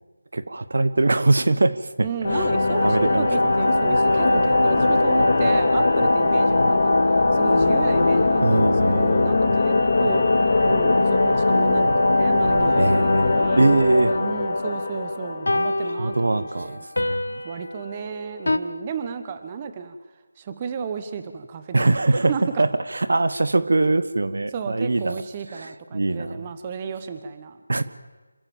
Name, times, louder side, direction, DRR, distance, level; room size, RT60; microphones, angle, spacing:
voice 1, 0.3-2.1 2.3-2.5 2.8-3.3 8.4-9.6 12.8-14.2 15.8-17.4 21.7-22.3 22.6-25.2 25.5-26.5 27.7-27.8, right 2 dB, 65° right, 13 dB, 1.2 m, -22 dB
voice 2, 2.0-10.2 10.6-13.7 14.2-16.9 17.4-20.0 20.4-22.6 24.5-27.6, right 6 dB, 20° right, 9 dB, 1.1 m, -33 dB
sound 1, 2.2-15.8, left 2 dB, 50° left, 2.3 m, -20 dB
sound 2, 11.2-11.3 15.5-18.6, left 2 dB, 75° left, 1.2 m, -27 dB
27.0 x 15.0 x 7.3 m, 1.3 s
figure-of-eight pair, 165°, 0 cm